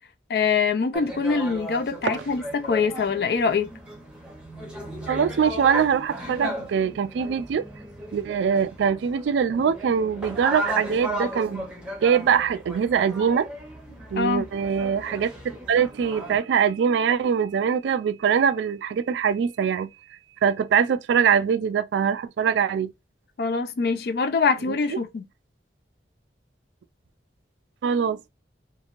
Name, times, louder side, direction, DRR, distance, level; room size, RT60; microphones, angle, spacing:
voice 1, 0.3-3.7 14.2-14.5 23.4-25.2, left 5 dB, 60° left, 0.4 m, -24 dB
sound 1, 0.9-16.4, right 1 dB, 5° right, 0.6 m, -36 dB
voice 2, 5.1-7.6 8.1-11.7 12.0-13.5 14.1-19.9 20.4-22.9 24.7-25.0 27.8-28.3, right 7 dB, 80° right, 0.3 m, -23 dB
3.0 x 2.5 x 2.4 m
head